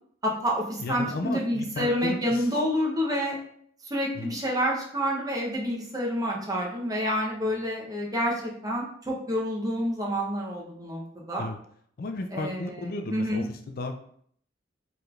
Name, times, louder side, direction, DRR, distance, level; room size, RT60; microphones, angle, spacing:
voice 1, 0.2-3.4 3.9-11.5 12.3-13.4, equal, 20° right, -2 dB, 0.8 m, -28 dB
voice 2, 0.8-2.5 4.1-4.4 11.4-11.6 12.0-14.0, left 2 dB, 50° left, 5 dB, 0.4 m, -34 dB
4.9 x 3.1 x 2.4 m, 0.63 s
head